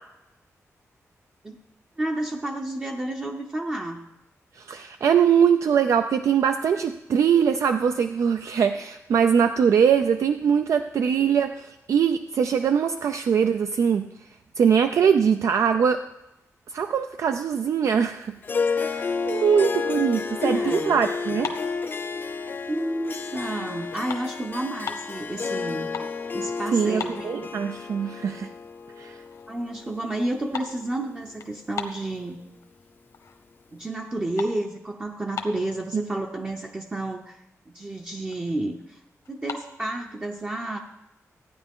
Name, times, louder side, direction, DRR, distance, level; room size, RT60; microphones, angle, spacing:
voice 1, 2.0-4.0 20.4-21.0 22.7-25.9 26.3-27.3 29.5-32.4 33.7-37.4 37.7-39.0 39.3-40.8, right 1 dB, 20° right, 1 dB, 0.6 m, -30 dB
voice 2, 4.6-14.1 14.6-16.0 16.7-18.4 18.7-21.5 26.7-28.5 29.0-29.2 35.9-36.0, right 7 dB, 70° right, 8 dB, 0.4 m, -22 dB
Harp, 18.4-31.0, left 5 dB, 40° left, 0.5 m, -31 dB
sound 1, 21.4-22.7 23.1-23.4 23.7-25.2 25.6-26.2 26.5-26.6 26.9-27.8 28.2-28.3 28.9-29.0 29.3-29.6 29.9-32.7 33.1-33.6 33.9-35.8 36.5-36.6 36.8-37.1 37.5-37.6 37.8-38.5 39.3-39.7, left 5 dB, 70° left, 1.0 m, -38 dB
14.5 x 9.5 x 3.6 m, 0.90 s
wide cardioid pair, 165°, 5 cm